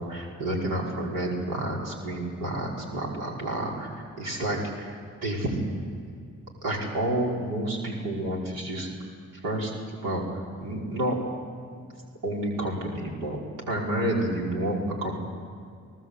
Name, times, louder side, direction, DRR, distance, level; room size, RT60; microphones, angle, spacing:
voice 1, 0.0-5.6 6.6-8.9 9.4-9.7 10.0-11.2 11.7-11.8 12.2-13.4 13.7-15.1, right 1 dB, 85° right, -2 dB, 5.0 m, -30 dB
26.0 x 18.0 x 8.1 m, 2.2 s
cardioid pair, 70°, 32 cm